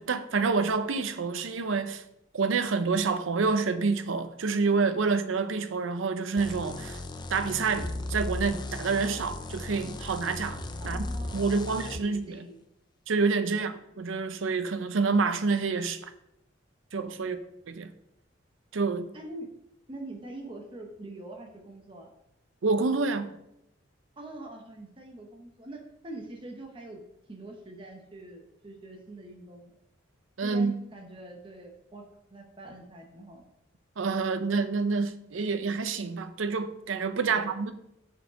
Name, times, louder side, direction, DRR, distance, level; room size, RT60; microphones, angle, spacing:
voice 1, 0.0-2.0 2.3-7.0 7.3-10.6 10.8-11.1 11.3-12.4 13.1-16.0 16.9-17.4 17.7-17.9 18.7-19.1 22.6-23.3 30.4-30.7 34.0-37.7, right 4 dB, 90° right, 0.6 m, -28 dB
sound 1, 6.4-12.0, left 2 dB, 20° left, 0.4 m, -36 dB
voice 2, 10.8-12.6 13.5-13.6 17.2-17.4 19.1-19.5 19.9-22.1 24.2-27.0 27.3-29.8 30.4-32.0 32.3-33.5 37.3-37.5, right 1 dB, 25° right, 0.9 m, -44 dB
6.6 x 4.7 x 5.1 m
head